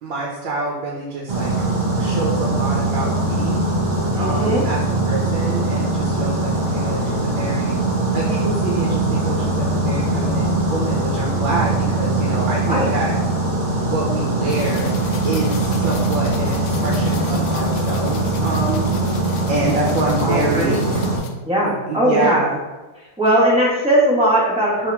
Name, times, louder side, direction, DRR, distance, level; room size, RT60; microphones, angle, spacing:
voice 1, 0.0-1.5 2.0-3.6 4.2-7.8 8.1-13.1 13.8-14.9 15.2-18.9 19.5-20.9 21.9-22.6, right 2 dB, 75° right, -2 dB, 1.5 m, -26 dB
sound 1, 1.3-21.2, right 2 dB, 60° right, 0.5 m, -21 dB
voice 2, 4.1-4.6 12.7-12.9 20.2-21.0 21.4-22.4 23.0-24.9, right 1 dB, 5° right, -8 dB, 1.0 m, -19 dB
sound 2, 14.5-21.3, left 6 dB, 75° left, 1.1 m, -37 dB
3.7 x 2.9 x 4.7 m, 1.2 s
omnidirectional pair, 2.1 m